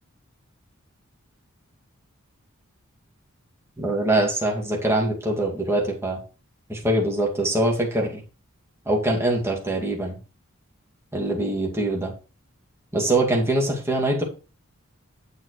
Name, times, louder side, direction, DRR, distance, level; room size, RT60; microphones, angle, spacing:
voice 1, 3.8-6.2 6.7-8.2 8.9-10.2 11.1-12.1 12.9-14.2, right 1 dB, 10° right, -2 dB, 2.3 m, -23 dB
9.4 x 7.8 x 3.2 m, 0.34 s
head